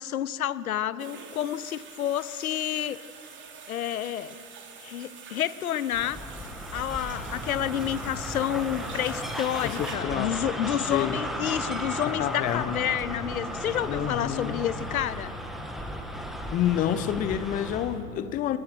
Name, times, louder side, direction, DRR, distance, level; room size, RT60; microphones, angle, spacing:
voice 1, 0.0-3.0 3.7-4.4 4.8-6.2 6.7-15.3, left 11 dB, 60° left, 18 dB, 0.8 m, -29 dB
sound 1, 1.0-10.0, right 6 dB, 25° right, 2.8 m, -46 dB
sound 2, 5.9-18.0, equal, ahead, 1.8 m, -35 dB
voice 2, 9.6-10.4 10.9-11.2 12.1-12.8 13.9-14.6 16.5-18.6, left 11 dB, 15° left, 14 dB, 0.7 m, -28 dB
26.5 x 22.0 x 5.9 m, 2.6 s
figure-of-eight pair, 100°, 48 cm